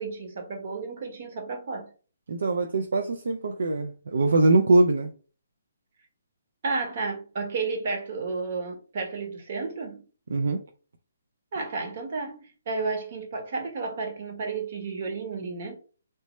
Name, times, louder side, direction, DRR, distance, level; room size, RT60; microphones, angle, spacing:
voice 1, 0.0-1.9 6.6-10.1 11.5-15.8, right 4 dB, 50° right, 1.0 m, -32 dB
voice 2, 2.3-5.1 10.3-10.6, right 2 dB, 75° right, 0.4 m, -22 dB
3.2 x 2.0 x 3.0 m
hypercardioid pair, 150°, 0 cm